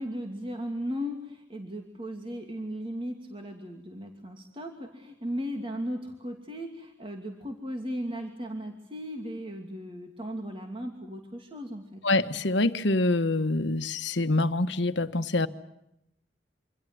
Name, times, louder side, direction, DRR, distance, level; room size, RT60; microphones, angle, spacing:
voice 1, 0.0-12.0, equal, 30° right, 3 dB, 2.7 m, -36 dB
voice 2, 12.0-15.5, left 2 dB, 70° left, 9 dB, 1.4 m, -25 dB
27.0 x 25.5 x 7.9 m, 0.81 s
head